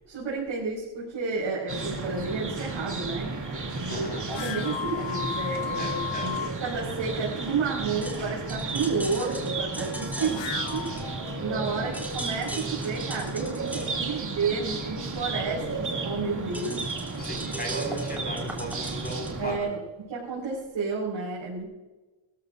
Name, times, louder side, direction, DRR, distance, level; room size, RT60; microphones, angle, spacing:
voice 1, 0.1-3.3 3.7-10.9 11.4-16.8 19.4-21.7, right 4 dB, 75° right, -6 dB, 5.3 m, -31 dB
sound 1, 1.7-19.6, right 3 dB, 40° right, 2.6 m, -33 dB
voice 2, 3.9-4.2 5.8-6.3 10.2-10.3 17.2-19.8, equal, 20° left, 2 dB, 5.7 m, -37 dB
sound 2, 4.2-6.5 10.1-11.8, left 9 dB, 65° left, 0.8 m, -35 dB
sound 3, 8.0-11.6 11.8-19.3, right 1 dB, 5° right, 3.1 m, -40 dB
24.0 x 14.5 x 2.6 m, 1.2 s
wide cardioid pair, 115°, 47 cm